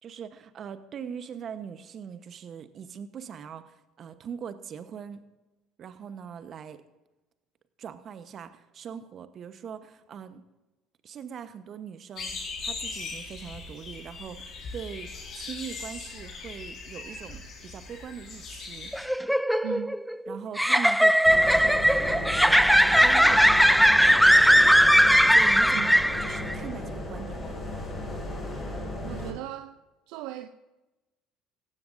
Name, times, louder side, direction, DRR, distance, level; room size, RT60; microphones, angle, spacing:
voice 1, 0.0-5.2 5.8-6.8 7.8-10.4 11.0-18.9 20.3-22.6 22.9-24.7 25.3-27.6, right 7 dB, 50° right, 1.1 m, -41 dB
sound 1, 12.2-19.0, left 4 dB, 50° left, 5.1 m, -39 dB
sound 2, 18.9-26.5, equal, ahead, 0.4 m, -19 dB
voice 2, 19.6-19.9 25.7-26.0 29.0-29.8 30.1-30.5, right 14 dB, 70° right, 0.5 m, -37 dB
sound 3, 21.3-29.3, left 1 dB, 30° left, 5.7 m, -35 dB
17.0 x 15.0 x 2.7 m
hypercardioid pair, 65°, 0 cm